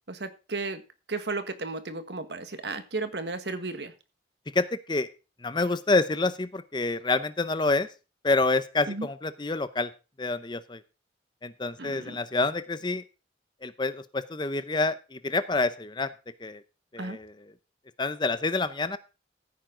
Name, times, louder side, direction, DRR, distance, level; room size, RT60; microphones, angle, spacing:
voice 1, 0.1-0.8 1.1-3.9 8.9-9.1 11.8-12.2 17.0-17.2, right 3 dB, 70° right, 10 dB, 1.4 m, -34 dB
voice 2, 4.5-5.1 5.4-7.9 8.2-9.9 10.2-10.8 11.4-13.0 13.6-16.1 16.4-16.6 16.9-17.3 18.0-19.0, left 3 dB, 25° left, 13 dB, 0.7 m, -27 dB
15.0 x 9.2 x 3.8 m, 0.31 s
head